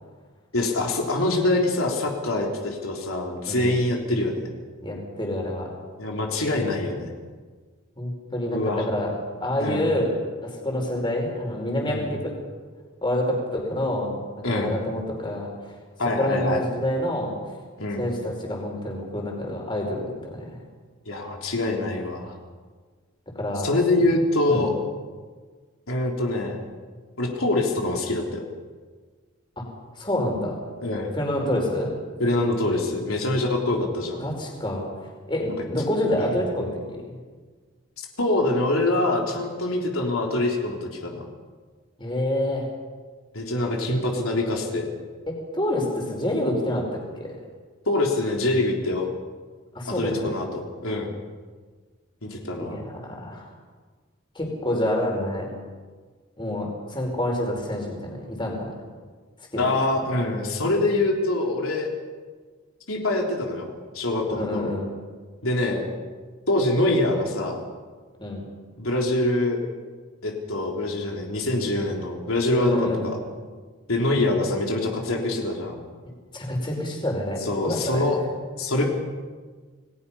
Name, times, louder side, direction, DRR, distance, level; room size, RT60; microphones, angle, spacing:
voice 1, 0.5-4.5 6.0-7.1 8.5-8.8 9.6-9.9 11.9-12.1 14.4-14.8 16.0-16.6 17.8-18.1 21.1-22.3 23.6-24.7 25.9-26.6 27.2-28.4 30.8-31.2 32.2-34.3 36.2-36.4 38.0-41.3 43.3-44.9 47.9-49.1 49.9-51.2 52.2-52.8 59.6-61.9 62.9-64.7 65.4-65.8 66.5-67.6 68.8-69.6 70.2-73.2 73.9-75.8 77.4-78.2 78.6-78.8, left 2 dB, 85° left, 0 dB, 3.5 m, -25 dB
voice 2, 4.8-5.8 8.0-10.1 10.4-12.3 13.0-15.5 16.1-17.3 18.0-20.6 23.3-23.7 24.4-24.7 29.6-29.7 30.0-30.6 31.1-32.1 34.2-34.9 35.3-37.2 42.0-42.6 45.3-47.4 49.7-50.3 52.6-53.5 54.3-55.5 56.4-58.7 59.5-59.6 64.3-64.9 68.2-68.4 72.6-73.1 76.3-78.1, left 1 dB, 20° left, 1 dB, 4.7 m, -27 dB
28.5 x 19.5 x 5.7 m, 1.5 s
head